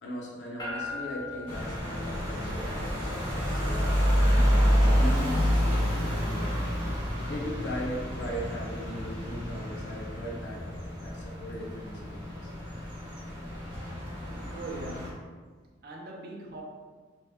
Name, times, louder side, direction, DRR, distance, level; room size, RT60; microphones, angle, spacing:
voice 1, 0.0-3.8 4.3-6.7 7.3-10.6 11.0-12.5, equal, 75° left, -3 dB, 0.6 m, -38 dB
sound 1, 0.6-14.9, left 3 dB, 20° left, 0.5 m, -47 dB
sound 2, 1.5-15.1, equal, 25° right, 0.9 m, -28 dB
voice 2, 14.5-15.3 15.8-16.6, right 2 dB, 55° right, 0 dB, 0.4 m, -41 dB
2.2 x 2.1 x 3.3 m, 1.5 s
head